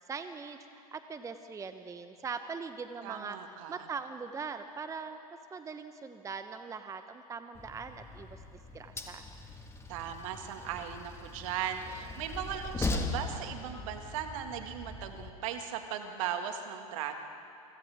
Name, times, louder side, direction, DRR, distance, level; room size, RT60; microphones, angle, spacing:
voice 1, 0.1-3.4 3.7-8.4 8.7-9.3, right 5 dB, 15° right, 9 dB, 0.9 m, -41 dB
voice 2, 3.0-3.8 9.9-17.2, right 9 dB, 60° right, 5 dB, 2.0 m, -38 dB
Train, 7.6-15.3, left 3 dB, 15° left, 1.8 m, -40 dB
28.5 x 25.0 x 3.6 m, 2.8 s
hypercardioid pair, 95°, 19 cm